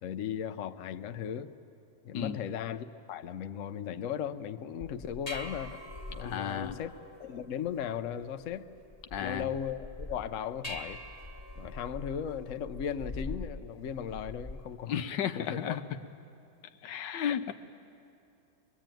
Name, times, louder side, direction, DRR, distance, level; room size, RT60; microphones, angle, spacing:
voice 1, 0.0-1.5 2.0-5.8 6.1-6.9 7.2-8.7 9.2-11.0 11.6-15.0 15.4-15.8 17.3-17.4, left 8 dB, 60° left, 9 dB, 0.8 m, -37 dB
sound 1, 4.8-14.8, left 1 dB, 20° left, 1.7 m, -44 dB
voice 2, 6.2-6.8 9.1-9.5 14.9-15.8 16.8-17.5, left 9 dB, 80° left, 9 dB, 1.5 m, -33 dB
23.5 x 22.0 x 9.0 m, 2.7 s
omnidirectional pair, 1.9 m